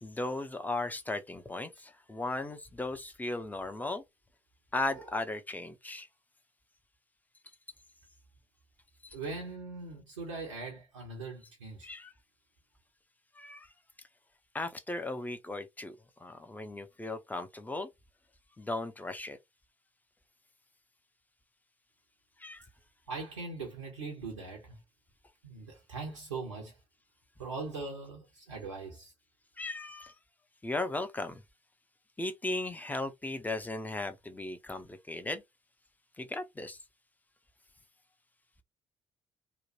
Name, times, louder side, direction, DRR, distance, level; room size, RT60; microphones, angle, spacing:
voice 1, 0.0-4.0 4.7-6.1 9.0-9.2 11.8-12.1 13.3-13.7 14.5-17.9 18.6-19.4 22.4-22.7 29.6-30.1 30.6-31.4 32.2-35.4 36.2-36.8, left 2 dB, 10° left, 0.6 m, -36 dB
voice 2, 9.1-11.9 23.1-24.8 25.4-26.7 27.4-29.1, right 3 dB, 80° right, 0.6 m, -41 dB
2.9 x 2.2 x 2.7 m
figure-of-eight pair, 45°, 15 cm